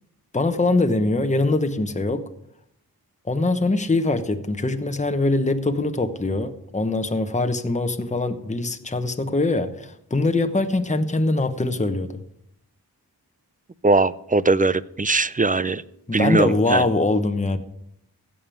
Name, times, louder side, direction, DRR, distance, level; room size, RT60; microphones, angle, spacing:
voice 1, 0.3-2.2 3.3-12.2 16.1-17.6, left 2 dB, 20° left, 8 dB, 1.0 m, -23 dB
voice 2, 13.8-15.8 16.1-16.8, right 3 dB, 20° right, 17 dB, 0.5 m, -20 dB
16.0 x 5.5 x 9.2 m, 0.78 s
wide cardioid pair, 65°, 39 cm